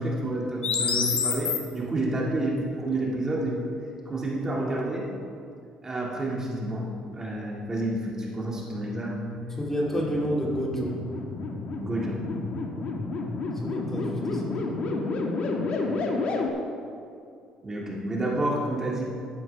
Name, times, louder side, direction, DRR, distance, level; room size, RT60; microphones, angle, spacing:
voice 1, 0.0-3.8 4.1-5.1 5.8-9.2 9.9-10.1 11.8-12.3 15.6-16.0 17.6-19.0, right 1 dB, 25° right, -3 dB, 1.9 m, -29 dB
sound 1, 0.6-1.6 9.7-16.5, left 4 dB, 60° left, 1.3 m, -30 dB
voice 2, 9.6-11.0 13.6-14.7, equal, 15° left, -3 dB, 2.2 m, -29 dB
11.5 x 10.5 x 3.3 m, 2.4 s
cardioid pair, 95°, 2 cm